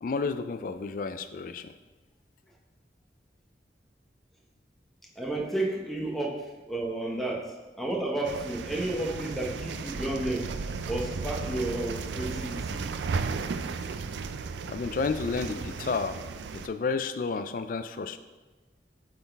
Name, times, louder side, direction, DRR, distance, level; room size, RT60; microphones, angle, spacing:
voice 1, 0.0-1.7 14.7-16.2 16.5-18.2, left 4 dB, 50° left, 10 dB, 0.3 m, -31 dB
voice 2, 5.2-10.5 10.9-12.9, right 1 dB, ahead, -2 dB, 0.8 m, -32 dB
sound 1, 8.2-16.7, right 4 dB, 75° right, 0.3 m, -35 dB
8.1 x 3.9 x 3.4 m, 1.2 s
head